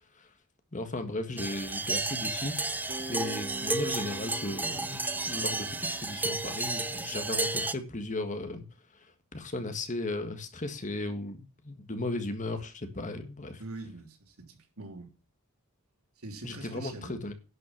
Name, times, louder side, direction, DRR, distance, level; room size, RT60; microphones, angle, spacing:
voice 1, 0.7-2.5 3.1-5.0 5.3-8.6 8.9-13.6 16.4-17.3, left 2 dB, 35° left, 1.7 m, -36 dB
sound 1, 1.4-7.7, right 2 dB, 10° right, 0.6 m, -32 dB
Bass guitar, 2.9-6.8, right 2 dB, 50° right, 3.5 m, -46 dB
voice 2, 13.6-15.1 16.2-17.2, right 2 dB, 80° right, 3.1 m, -43 dB
11.0 x 6.1 x 7.2 m
head